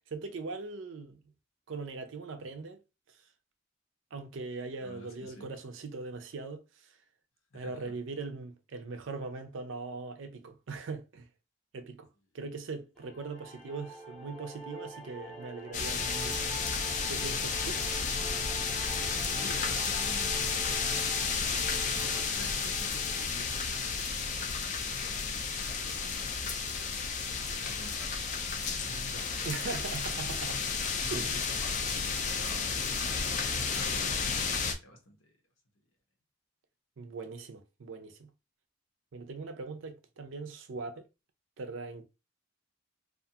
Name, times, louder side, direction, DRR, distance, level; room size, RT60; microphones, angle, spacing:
voice 1, 0.1-1.2 1.7-2.8 4.1-6.9 7.5-11.3 11.7-12.1 12.3-16.5 17.1-17.8 29.4-30.6 31.1-31.3 37.0-38.3 39.1-41.0 41.6-42.0, right 4 dB, 70° right, 0.5 m, -40 dB
voice 2, 4.8-5.5 7.5-8.0 19.0-30.2 31.0-34.5 34.8-35.3 35.7-35.8, left 1 dB, 90° left, 0.9 m, -50 dB
sound 1, 13.0-24.0, right 2 dB, ahead, 0.7 m, -47 dB
sound 2, 15.7-34.7, left 5 dB, 40° left, 0.3 m, -32 dB
2.5 x 2.3 x 2.7 m
head